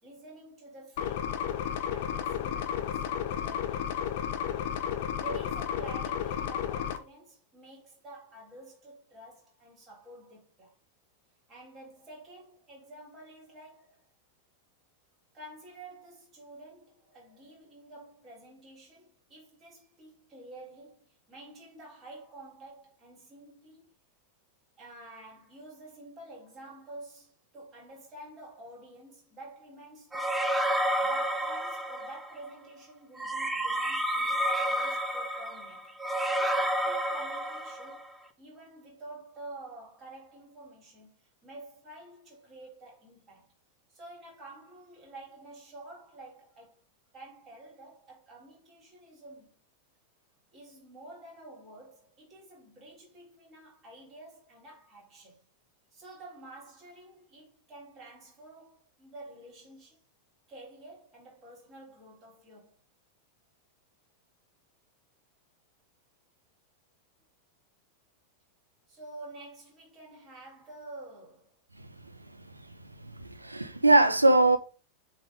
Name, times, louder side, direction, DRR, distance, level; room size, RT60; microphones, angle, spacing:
voice 1, 0.0-4.0 4.6-4.7 5.1-10.7 11.5-14.1 15.3-23.9 24.8-30.5 31.0-38.0 38.4-43.5 43.9-46.8 47.1-49.5 50.5-55.4 55.9-60.0 60.5-62.8 68.9-71.6, right 2 dB, 25° right, 3.5 m, -49 dB
sound 1, 1.0-7.0, left 9 dB, 50° left, 0.8 m, -32 dB
sound 2, 30.1-32.3 33.2-38.1, right 1 dB, 10° right, 0.7 m, -30 dB
voice 2, 73.0-74.6, right 2 dB, 85° right, 0.6 m, -22 dB
7.6 x 3.7 x 3.7 m
figure-of-eight pair, 90°, 0 cm